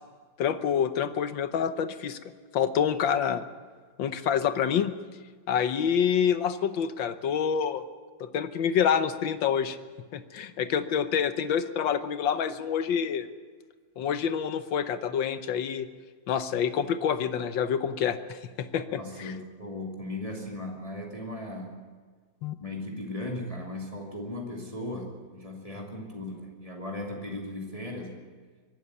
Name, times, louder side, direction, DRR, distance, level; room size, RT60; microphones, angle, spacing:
voice 1, 0.4-2.2 2.5-3.4 4.0-4.9 5.5-7.8 8.2-9.8 10.1-13.3 14.0-15.9 16.3-19.3 22.4-22.6, left 8 dB, 85° left, 11 dB, 1.7 m, -27 dB
voice 2, 18.9-21.8 22.6-28.3, left 1 dB, 20° left, -1 dB, 2.4 m, -37 dB
23.0 x 12.5 x 9.2 m, 1.5 s
omnidirectional pair, 2.0 m